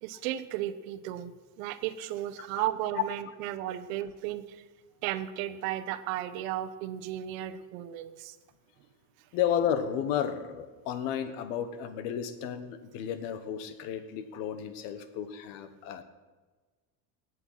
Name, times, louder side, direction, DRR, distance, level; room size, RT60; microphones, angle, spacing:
voice 1, 0.0-4.6 5.0-8.4, right 13 dB, 75° right, 13 dB, 1.0 m, -34 dB
voice 2, 9.3-16.0, left 9 dB, 70° left, 11 dB, 1.4 m, -32 dB
18.5 x 8.1 x 5.8 m, 1.3 s
cardioid pair, 175°, 41 cm